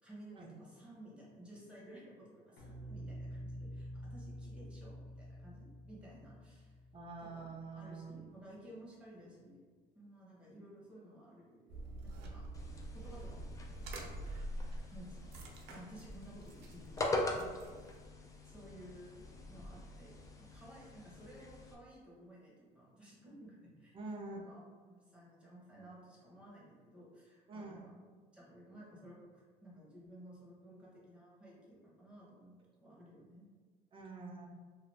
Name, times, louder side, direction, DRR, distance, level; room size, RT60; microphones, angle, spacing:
voice 1, 0.0-6.8 7.4-9.6 9.9-12.5 12.9-13.9 14.9-15.3 15.7-17.8 18.4-24.6 24.9-27.9 28.3-29.3 29.6-33.5, right 1 dB, 5° right, -6 dB, 1.0 m, -55 dB
sound 1, 2.6-7.8, equal, 65° left, 0.7 m, -48 dB
voice 2, 6.9-8.2 14.7-14.8 23.9-24.4 27.5-27.9 33.9-34.5, right 3 dB, 30° right, 0 dB, 0.6 m, -46 dB
sound 2, 11.7-18.0, right 1 dB, 80° right, 0.5 m, -46 dB
sound 3, 12.5-21.7, left 2 dB, 20° left, 0.4 m, -43 dB
2.5 x 2.3 x 3.3 m, 1.5 s
cardioid pair, 110°, 17 cm